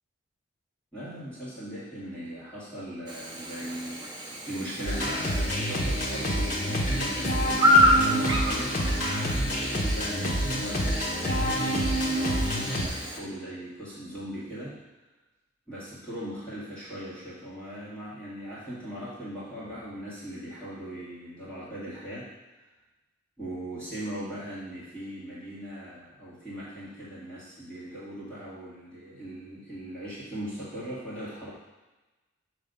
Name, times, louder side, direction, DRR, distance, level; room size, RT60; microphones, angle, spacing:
voice 1, 0.9-8.8 9.4-14.8 15.7-22.3 23.4-31.5, right 1 dB, 5° left, -11 dB, 1.9 m, -39 dB
Chirp tweet / Buzz, 3.1-13.2, left 1 dB, 20° right, 0.6 m, -29 dB
sound 1, 4.9-12.9, equal, 40° left, 1.0 m, -27 dB
6.9 x 3.2 x 5.2 m, 1.1 s
head